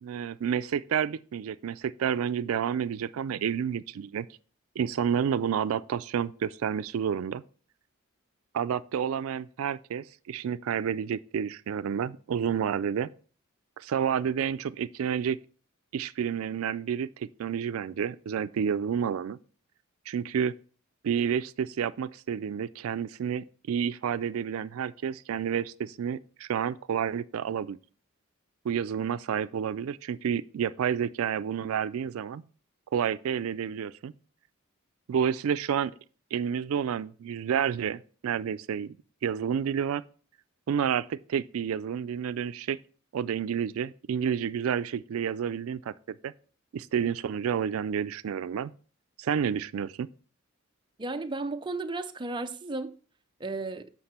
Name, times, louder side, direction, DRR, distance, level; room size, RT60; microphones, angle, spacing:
voice 1, 0.0-4.3 4.8-7.4 8.5-13.1 13.8-15.4 15.9-19.4 20.1-20.5 21.0-27.8 28.6-32.4 32.9-34.1 35.1-35.9 36.3-39.0 39.2-40.0 40.7-42.8 43.1-46.3 46.7-48.7 49.2-50.1, right 8 dB, 85° right, 0.3 m, -30 dB
voice 2, 51.0-52.9 53.4-53.9, right 3 dB, 25° right, 0.5 m, -34 dB
7.8 x 5.9 x 4.2 m
head